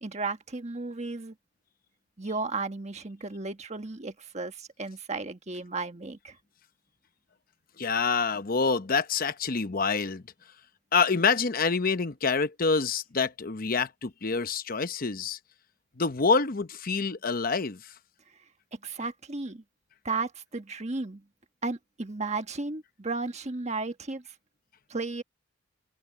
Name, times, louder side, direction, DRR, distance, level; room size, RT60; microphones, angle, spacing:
voice 1, 0.0-1.3 2.2-6.3 18.7-19.6 20.0-21.2 21.6-24.2 24.9-25.2, right 3 dB, 35° right, 1.5 m, -34 dB
voice 2, 7.8-10.2 10.9-15.4 16.0-17.9, left 4 dB, 45° left, 0.9 m, -27 dB
open air
head